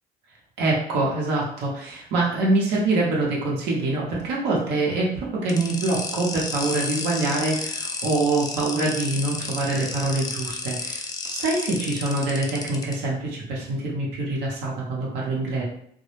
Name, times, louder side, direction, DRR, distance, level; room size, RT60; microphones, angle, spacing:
voice 1, 0.6-15.6, right 2 dB, 80° right, -4 dB, 0.7 m, -25 dB
sound 1, 5.5-12.9, left 3 dB, 25° left, 0.3 m, -32 dB
2.1 x 2.0 x 3.0 m, 0.68 s
cardioid pair, 110°, 17 cm